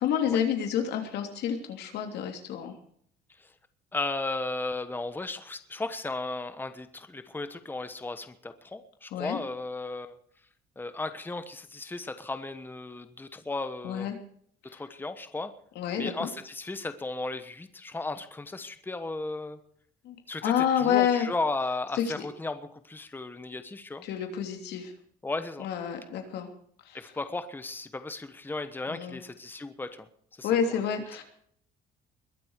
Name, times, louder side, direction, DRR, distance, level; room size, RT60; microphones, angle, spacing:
voice 1, 0.0-2.7 9.1-9.4 13.8-14.2 15.7-16.3 20.0-20.2 20.4-21.3 21.9-22.1 24.0-24.9 25.6-26.5 26.9-27.0 28.9-29.2 30.4-31.2, left 8 dB, 80° left, 5 dB, 3.1 m, -28 dB
voice 2, 3.9-10.2 10.8-14.1 14.6-15.5 16.0-19.6 20.3-24.1 25.2-25.7 26.9-30.1 30.4-30.8, left 2 dB, 10° left, 10 dB, 1.2 m, -35 dB
22.0 x 7.8 x 6.6 m, 0.63 s
cardioid pair, 110°, 17 cm